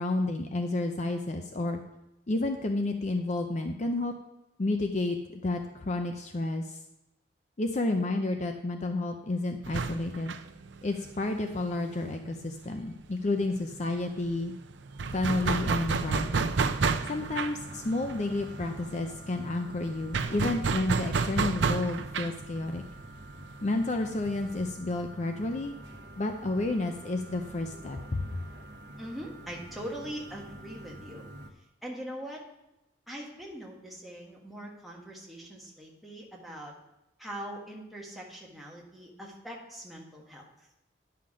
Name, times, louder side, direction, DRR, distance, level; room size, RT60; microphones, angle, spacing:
voice 1, 0.0-1.8 2.3-4.1 4.6-6.8 7.6-10.3 10.8-14.5 15.1-16.5 17.1-22.8 23.6-25.7 26.2-28.2, left 2 dB, 40° left, 5 dB, 0.6 m, -31 dB
sound 1, 9.6-13.1 13.3-13.4 13.7-24.7, right 4 dB, 85° right, 0.5 m, -31 dB
sound 2, 15.1-31.5, right 1 dB, 65° right, 1.1 m, -48 dB
voice 2, 29.0-31.3 31.8-32.4 33.1-36.7 37.2-40.4, equal, ahead, -3 dB, 1.6 m, -42 dB
10.0 x 5.8 x 4.9 m, 0.91 s
head